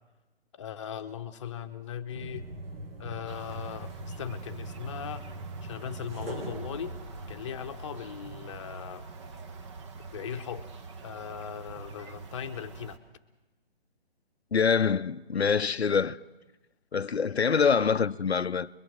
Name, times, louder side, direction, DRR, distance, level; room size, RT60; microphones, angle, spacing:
voice 1, 0.5-2.5 3.0-5.3 5.6-7.0 7.3-9.1 10.0-10.7 11.0-13.0, left 8 dB, 30° left, 1.0 m, -39 dB
sound 1, 2.1-8.0, right 2 dB, 70° right, 2.2 m, -41 dB
sound 2, 3.3-13.0, right 4 dB, 30° right, 1.1 m, -45 dB
voice 2, 14.5-16.2 16.9-18.7, left 6 dB, 90° left, 0.7 m, -25 dB
24.5 x 22.5 x 6.4 m
figure-of-eight pair, 145°, 31 cm